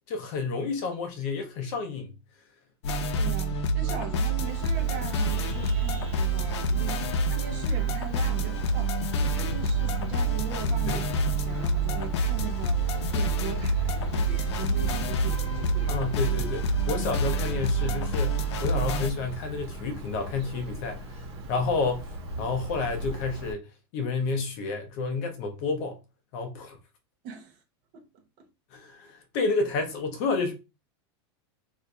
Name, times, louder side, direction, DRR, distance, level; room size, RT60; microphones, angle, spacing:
voice 1, 0.1-2.1 3.8-4.0 5.6-5.7 6.8-6.9 10.9-11.0 15.9-21.1 21.5-22.1 22.4-23.6 23.9-26.0 26.3-26.8 28.7-30.5, left 4 dB, 35° left, 0.6 m, -30 dB
sound 1, 2.8-19.1, right 2 dB, 90° left, 0.5 m, -27 dB
voice 2, 3.1-12.8 13.1-16.0 27.2-27.6 27.9-28.5, right 6 dB, 30° right, 0.6 m, -40 dB
Vehicle horn car horn honking, 4.4-23.5, right 1 dB, 65° right, 1.1 m, -38 dB
4.4 x 2.5 x 2.2 m
supercardioid pair, 180°, 14 cm